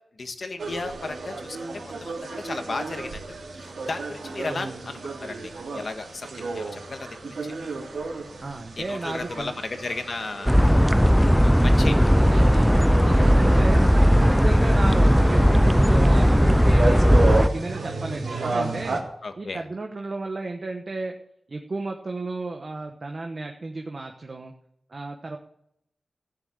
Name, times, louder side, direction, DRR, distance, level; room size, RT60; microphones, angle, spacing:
voice 1, 0.2-7.5 8.8-10.6 11.3-12.0 19.2-19.6, left 3 dB, 45° left, 7 dB, 1.5 m, -35 dB
sound 1, 0.6-19.0, right 3 dB, 70° right, 3.1 m, -32 dB
voice 2, 4.5-4.8 8.4-9.5 13.1-13.8 14.2-19.0 19.4-21.1 21.5-24.5 24.9-25.4, right 3 dB, 35° right, 3 dB, 1.1 m, -33 dB
sound 2, 10.5-17.5, equal, ahead, 0.4 m, -17 dB
15.0 x 7.6 x 8.8 m, 0.74 s
wide cardioid pair, 155°, 0 cm